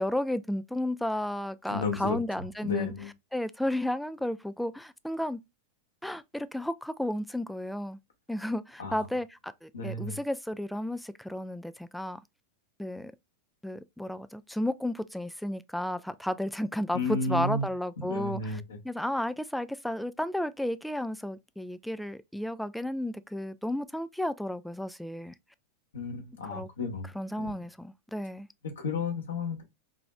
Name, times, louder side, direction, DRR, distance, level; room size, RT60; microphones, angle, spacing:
voice 1, 0.0-2.9 3.3-5.4 6.0-8.0 8.3-12.2 12.8-13.1 13.6-25.3 26.5-26.7 27.1-28.5, left 1 dB, ahead, 0.3 m, -33 dB
voice 2, 1.7-2.2 2.6-3.1 8.8-9.1 9.7-10.2 16.9-17.7 18.0-18.8 25.9-27.1 27.4-27.5 28.6-29.6, left 3 dB, 65° left, 1.2 m, -32 dB
4.1 x 3.0 x 2.3 m
figure-of-eight pair, 90°, 0 cm